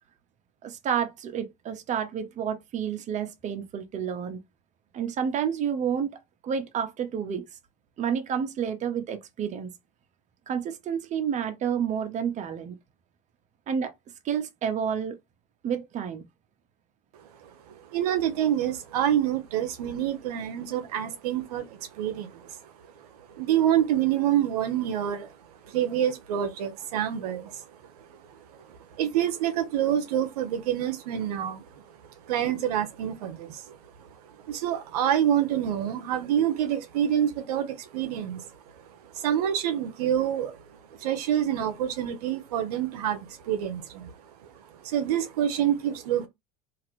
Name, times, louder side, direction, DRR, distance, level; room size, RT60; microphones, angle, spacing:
voice 1, 0.6-4.4 4.9-7.4 8.0-9.7 10.5-12.8 13.7-13.9 14.2-15.2 15.6-16.2, right 8 dB, 40° right, 0.7 m, -30 dB
voice 2, 17.4-25.3 25.6-27.7 28.0-31.8 32.2-38.5 39.1-44.3 44.7-46.3, right 10 dB, 90° right, 0.6 m, -27 dB
2.9 x 2.5 x 3.0 m
supercardioid pair, 100°, 19 cm